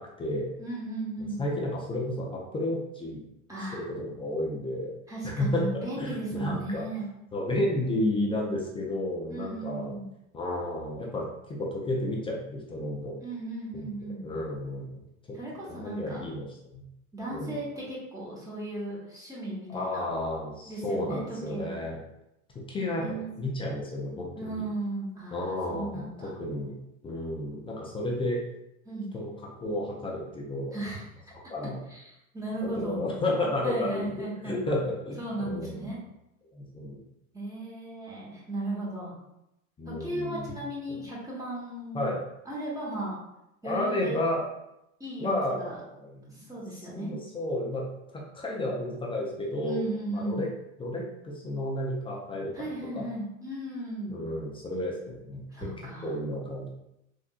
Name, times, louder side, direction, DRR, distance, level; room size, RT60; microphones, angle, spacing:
voice 1, 0.0-0.5 1.2-3.2 4.0-4.9 5.2-5.7 6.0-6.8 7.3-10.0 10.3-13.2 13.7-13.9 14.2-14.9 15.3-15.4 15.7-16.9 17.3-17.6 19.7-22.0 22.5-23.0 23.4-24.6 25.3-26.7 27.0-28.4 29.1-29.3 29.6-30.7 31.3-31.8 32.6-35.9 36.5-37.0 39.8-40.6 41.9-42.2 43.6-44.4 45.2-46.3 46.9-47.8 48.1-49.8 50.1-50.5 50.8-52.5 52.9-53.0 54.1-55.4 56.0-56.7, left 1 dB, 15° left, -2 dB, 0.4 m, -32 dB
voice 2, 0.6-1.4 3.5-3.8 5.1-7.1 9.3-10.1 13.2-14.2 15.3-16.2 17.1-20.1 20.6-21.8 22.9-23.3 24.4-26.3 28.8-29.1 30.7-31.0 31.9-33.0 33.6-34.6 35.2-36.0 37.3-39.2 39.9-42.1 42.4-43.2 43.6-44.2 45.0-45.8 46.3-47.1 49.6-50.5 52.5-54.2 55.5-56.1, right 1 dB, 10° right, -6 dB, 1.2 m, -36 dB
3.5 x 2.5 x 2.4 m, 0.84 s
hypercardioid pair, 95°, 42 cm